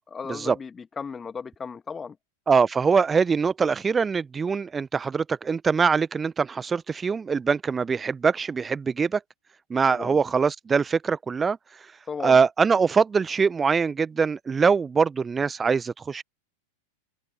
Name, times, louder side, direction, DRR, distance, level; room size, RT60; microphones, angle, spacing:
voice 1, 0.1-2.2 9.9-10.2 12.1-12.4, left 5 dB, 15° left, 1.9 m, -35 dB
voice 2, 2.5-9.2 9.7-11.6 12.2-16.2, right 5 dB, 15° right, 1.1 m, -23 dB
open air
figure-of-eight pair, 90°, 0 cm